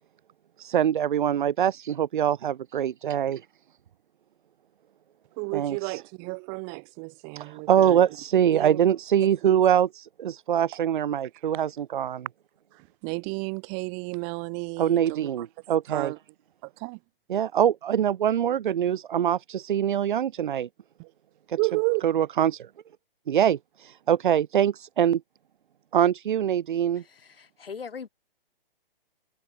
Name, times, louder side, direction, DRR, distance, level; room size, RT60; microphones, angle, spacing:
voice 1, 0.7-3.5 5.5-6.0 7.4-12.3 14.8-16.1 17.3-20.7 21.5-21.6 22.0-22.7 23.3-25.2 25.9-27.0, right 9 dB, 55° right, 1.6 m, -24 dB
voice 2, 5.4-8.0 8.5-8.8 9.4-9.6 12.7-15.3 15.9-16.2 16.6-17.0 21.0-21.1 21.6-22.0, right 40 dB or more, 25° right, 1.5 m, -32 dB
voice 3, 26.9-28.1, left 6 dB, 75° left, 3.2 m, -40 dB
hypercardioid pair, 140°, 29 cm